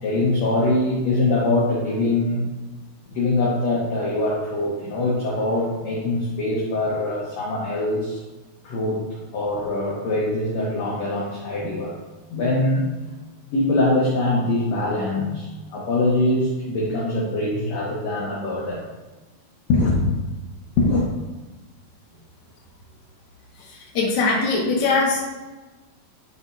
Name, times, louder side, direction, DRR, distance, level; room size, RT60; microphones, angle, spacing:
voice 1, 0.0-2.4 3.1-8.2 8.6-9.0 9.3-11.9 12.3-12.9 13.5-18.8 19.7-20.1 20.8-21.0, left 2 dB, 70° left, -5 dB, 1.6 m, -23 dB
voice 2, 23.6-25.3, left 3 dB, 50° left, -5 dB, 1.4 m, -22 dB
10.5 x 4.2 x 2.7 m, 1.2 s
omnidirectional pair, 4.5 m